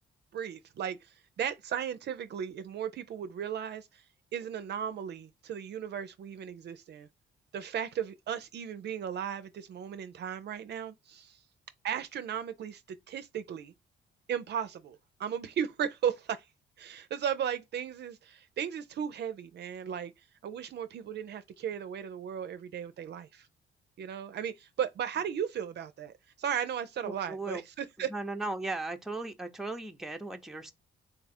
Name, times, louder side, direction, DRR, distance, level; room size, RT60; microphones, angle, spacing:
voice 1, 0.3-4.0 4.3-7.1 7.5-11.4 11.8-13.7 14.3-16.5 16.8-20.1 20.4-23.5 24.0-28.1, right 8 dB, 60° right, 0.5 m, -36 dB
voice 2, 27.0-27.6 28.1-30.7, right 2 dB, ahead, 0.7 m, -37 dB
3.7 x 2.4 x 4.2 m
cardioid pair, 90°, 20 cm